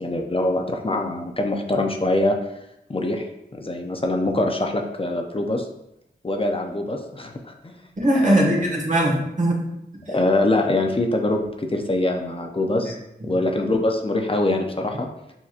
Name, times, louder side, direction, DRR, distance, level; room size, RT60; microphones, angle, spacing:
voice 1, 0.0-2.4 2.9-3.3 3.5-5.7 6.2-7.9 8.2-8.6 10.1-13.0 13.3-15.1, left 2 dB, 30° left, 2 dB, 0.6 m, -23 dB
voice 2, 8.0-9.6 10.1-10.2 12.8-12.9 13.2-13.4, right 1 dB, 45° right, -3 dB, 1.5 m, -21 dB
6.9 x 2.9 x 2.5 m, 0.83 s
cardioid pair, 50°, 18 cm